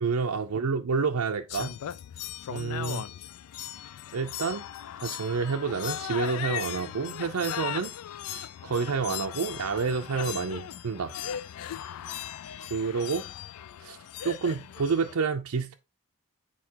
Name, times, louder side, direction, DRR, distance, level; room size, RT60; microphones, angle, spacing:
voice 1, 0.0-1.7 2.5-3.1 4.1-4.6 5.0-7.9 8.3-11.1 12.7-13.3 13.8-14.0 14.2-15.8, right 5 dB, 80° right, 0.5 m, -29 dB
sound 1, 1.5-15.1, left 10 dB, 80° left, 0.3 m, -38 dB
8.6 x 4.3 x 2.9 m
head